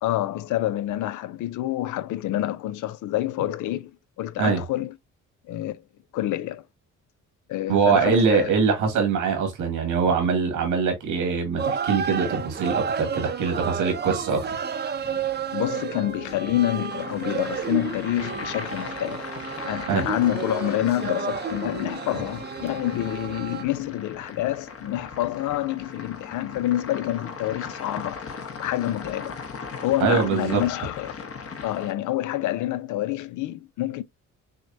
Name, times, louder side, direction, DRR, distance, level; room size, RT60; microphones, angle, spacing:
voice 1, 0.0-3.9 4.2-4.9 5.5-5.8 6.1-6.6 7.5-8.6 15.5-19.3 19.7-28.3 28.6-29.4 29.8-31.3 31.6-34.0, left 14 dB, 75° left, 0.5 m, -27 dB
voice 2, 7.7-14.6 19.9-20.0 30.0-30.6, right 5 dB, 90° right, 1.9 m, -23 dB
sound 1, 11.6-23.6, right 6 dB, 35° right, 0.6 m, -31 dB
sound 2, 16.8-31.9, left 5 dB, 50° left, 1.1 m, -39 dB
6.3 x 2.2 x 2.6 m
cardioid pair, 90°, 30 cm